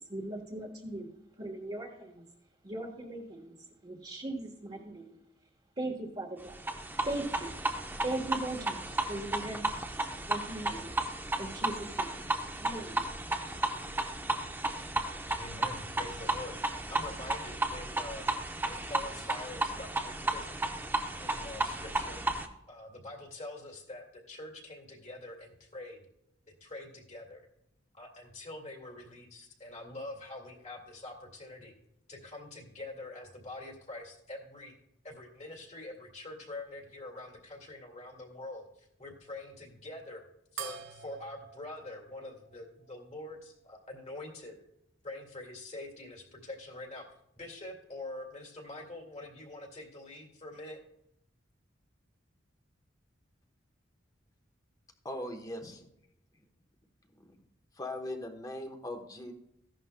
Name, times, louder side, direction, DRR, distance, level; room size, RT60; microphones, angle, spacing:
voice 1, 0.1-1.1 1.4-2.2 2.6-3.6 3.8-5.1 5.8-6.7 7.0-7.5 8.0-8.8 9.1-9.7 10.3-11.0 11.4-12.3 12.6-13.1, right 2 dB, 30° right, -3 dB, 1.2 m, -38 dB
sound 1, 6.5-22.5, right 2 dB, 10° right, 0.7 m, -34 dB
voice 2, 15.4-16.6 16.9-18.3 18.7-20.7 21.2-22.2 22.7-26.0 26.6-27.5 27.9-31.7 32.1-34.7 35.0-40.2 40.5-44.6 45.0-47.1 47.4-50.8, left 2 dB, 35° left, 1 dB, 2.1 m, -45 dB
sound 2, 40.6-43.4, right 7 dB, 75° right, 0.9 m, -46 dB
voice 3, 55.0-55.9 56.3-56.5 57.1-57.4 57.7-59.3, left 1 dB, 20° left, 5 dB, 1.1 m, -40 dB
15.0 x 11.0 x 2.2 m, 0.80 s
head